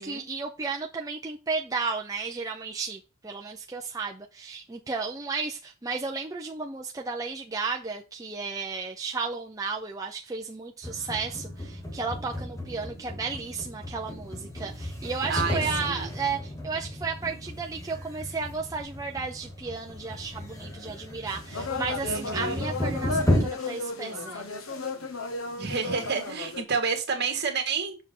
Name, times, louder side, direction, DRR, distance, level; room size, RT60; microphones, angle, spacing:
voice 1, 0.0-24.5, right 4 dB, 15° right, 0 dB, 0.5 m, -33 dB
sound 1, 10.8-23.5, left 1 dB, 15° left, 1.4 m, -34 dB
voice 2, 15.3-16.1 22.0-22.7 25.6-28.0, right 5 dB, 50° right, 4 dB, 1.8 m, -30 dB
sound 2, 21.3-26.6, left 3 dB, 75° left, 1.2 m, -34 dB
6.9 x 6.0 x 3.8 m, 0.30 s
head